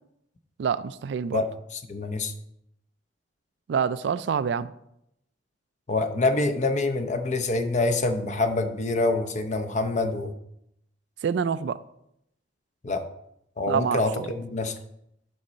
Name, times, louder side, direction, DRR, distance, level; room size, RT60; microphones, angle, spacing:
voice 1, 0.6-1.4 3.7-4.7 11.2-11.8 13.7-14.3, right 6 dB, 65° right, 0.3 m, -26 dB
voice 2, 1.9-2.3 5.9-10.3 12.8-13.0 13.6-14.7, left 2 dB, 40° left, 0.7 m, -26 dB
7.7 x 4.1 x 5.5 m
head